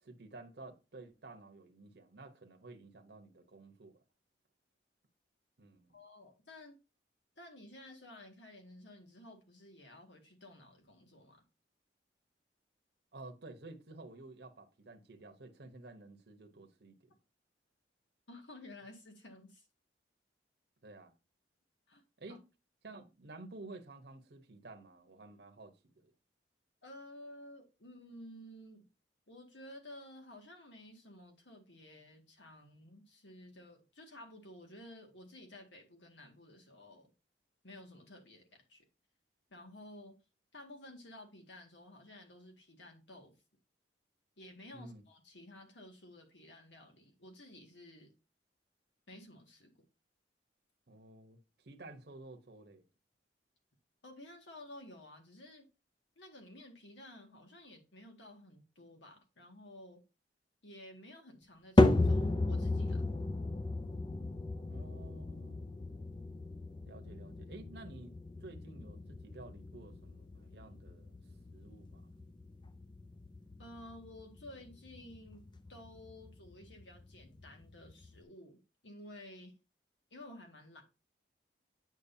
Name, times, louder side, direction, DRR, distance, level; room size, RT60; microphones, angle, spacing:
voice 1, 0.0-3.9 5.6-6.0 13.1-17.2 20.8-21.1 22.2-22.4 22.8-26.1 44.7-45.0 50.9-52.8 64.7-65.6 66.8-71.2 71.5-72.1, right 2 dB, 65° right, 1.0 m, -52 dB
voice 2, 5.9-6.8 7.4-11.4 18.3-19.7 21.9-22.0 26.8-28.9 29.3-37.1 37.6-38.8 39.5-40.2 40.5-43.3 44.4-48.1 49.1-49.7 54.0-55.7 56.2-60.0 60.6-63.1 73.6-79.5 80.1-80.8, left 1 dB, 85° left, 2.0 m, -53 dB
sound 1, 61.8-78.2, left 2 dB, 25° left, 0.5 m, -34 dB
8.3 x 6.2 x 2.7 m
head